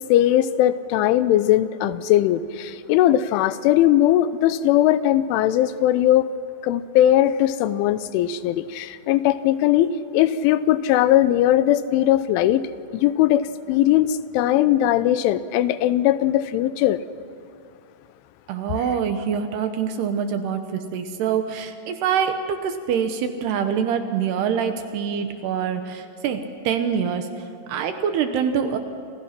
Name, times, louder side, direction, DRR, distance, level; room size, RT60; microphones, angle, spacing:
voice 1, 0.1-6.3 6.6-12.7 12.9-17.0, left 12 dB, 85° left, 14 dB, 3.2 m, -19 dB
voice 2, 18.5-27.3 27.7-28.8, right 7 dB, 70° right, 7 dB, 2.9 m, -25 dB
28.5 x 27.5 x 6.0 m, 2.3 s
omnidirectional pair, 5.5 m